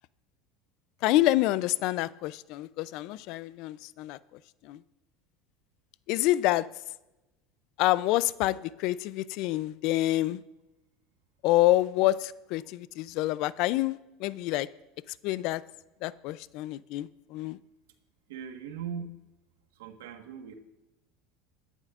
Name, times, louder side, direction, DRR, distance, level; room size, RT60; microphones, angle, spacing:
voice 1, 1.0-4.2 4.6-4.8 6.1-6.7 7.8-10.4 11.4-14.7 15.2-15.6 16.0-17.6, left 16 dB, 60° left, 0.4 m, -27 dB
voice 2, 18.3-19.1 19.7-20.5, right 7 dB, 90° right, 1.4 m, -39 dB
22.5 x 11.0 x 2.5 m
supercardioid pair, 120°, 0 cm